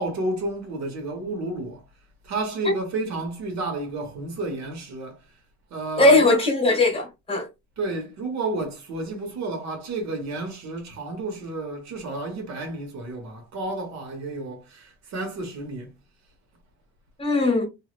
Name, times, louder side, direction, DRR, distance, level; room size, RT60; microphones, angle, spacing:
voice 1, 0.0-1.8 2.2-5.2 5.7-6.4 7.8-15.9, right 2 dB, 65° right, 1.4 m, -31 dB
voice 2, 6.0-7.5 17.2-17.7, left 2 dB, 20° left, 1.6 m, -19 dB
3.1 x 2.8 x 2.4 m
cardioid pair, 130°, 29 cm